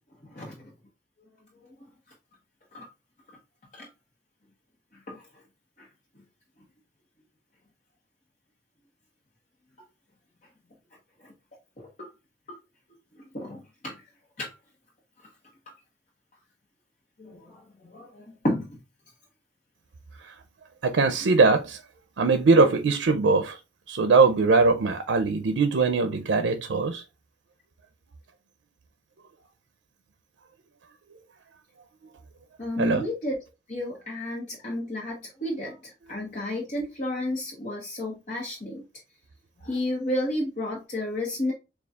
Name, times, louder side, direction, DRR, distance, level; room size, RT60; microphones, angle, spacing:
voice 1, 0.3-0.7 2.7-2.9 3.7-3.9 5.1-5.2 5.8-5.9 11.2-11.3 12.0-12.1 12.5-12.6 13.3-14.0 14.4-14.5 17.2-18.8 32.6-33.4 33.7-38.8 39.6-41.5, left 1 dB, 45° left, 1.0 m, -32 dB
voice 2, 20.8-21.8 22.2-23.6 23.9-27.0 32.8-33.0, right 4 dB, 80° right, 0.5 m, -21 dB
6.7 x 2.4 x 2.3 m
head